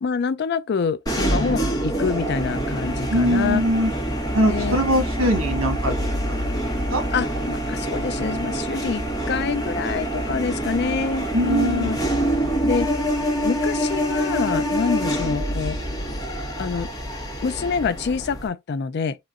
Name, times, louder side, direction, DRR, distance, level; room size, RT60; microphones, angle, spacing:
voice 1, 0.0-3.6 4.4-4.8 7.1-12.0 12.6-12.9 13.4-15.8 16.6-16.9 17.4-19.2, left 5 dB, 50° left, 0.4 m, -26 dB
sound 1, 1.1-18.5, equal, 20° left, 1.5 m, -26 dB
voice 2, 3.1-3.9 4.3-6.5 6.9-7.0 11.3-11.9, equal, 85° right, 1.6 m, -22 dB
3.8 x 3.0 x 2.4 m
head